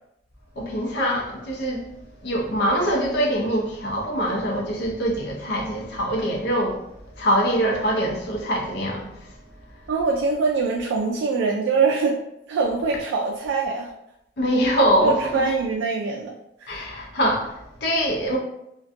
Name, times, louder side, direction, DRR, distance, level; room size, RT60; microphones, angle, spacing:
voice 1, 0.6-1.9 2.2-6.8 7.2-9.3 14.4-15.4 16.7-18.4, equal, 60° left, -1 dB, 0.6 m, -23 dB
voice 2, 9.9-12.2 12.5-13.9 15.0-16.3 16.6-16.7, right 4 dB, 85° right, 0 dB, 0.3 m, -23 dB
2.5 x 2.2 x 2.5 m, 0.83 s
head